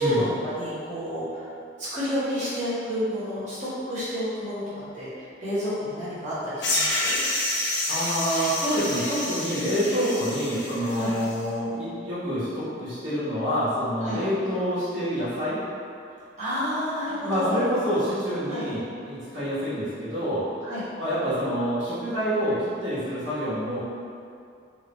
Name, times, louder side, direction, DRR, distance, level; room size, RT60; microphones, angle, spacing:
voice 1, 0.0-1.4 1.8-4.6 4.9-7.2 10.9-11.1 14.0-14.2 16.4-17.6 18.5-18.6 20.6-20.8, equal, 40° right, -12 dB, 1.1 m, -29 dB
sound 1, 6.6-11.3, left 1 dB, 70° left, 0.7 m, -28 dB
voice 2, 7.9-15.6 17.2-20.5 21.0-23.8, equal, 85° right, -12 dB, 1.3 m, -27 dB
3.3 x 2.3 x 3.0 m, 2.4 s
head